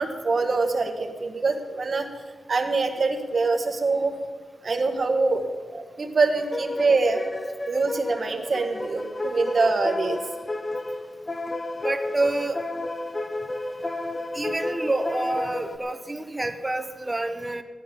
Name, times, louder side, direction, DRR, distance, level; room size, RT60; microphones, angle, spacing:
voice 1, 0.0-2.1 2.5-4.1 4.6-5.4 5.7-7.2 7.7-10.2, right 3 dB, 45° right, 4 dB, 1.7 m, -24 dB
sound 1, 6.3-15.8, left 2 dB, 25° left, 0.9 m, -32 dB
voice 2, 11.8-12.6 14.3-17.6, right 2 dB, 15° right, 7 dB, 1.1 m, -27 dB
16.0 x 12.0 x 5.3 m, 1.4 s
wide cardioid pair, 130°, 0 cm